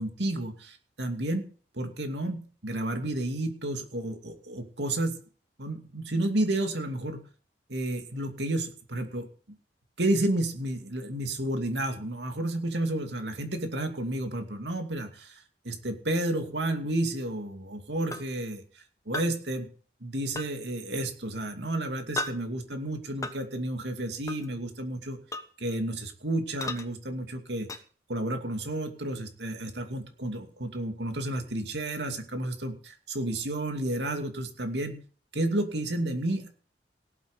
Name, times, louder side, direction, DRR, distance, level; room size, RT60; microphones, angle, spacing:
voice 1, 0.0-1.4 1.7-5.2 5.6-7.2 7.7-9.3 10.0-19.7 20.0-25.2 25.6-27.7 28.1-35.0 35.3-36.5, right 1 dB, 75° right, 5 dB, 2.6 m, -31 dB
sound 1, 18.1-18.2 19.1-19.3 20.3-20.5 22.2-22.4 23.2-23.4 24.3-24.5 25.3-25.5 26.6-26.9 27.7-27.8, left 2 dB, 20° left, 1.2 m, -33 dB
18.0 x 8.3 x 5.2 m, 0.41 s
head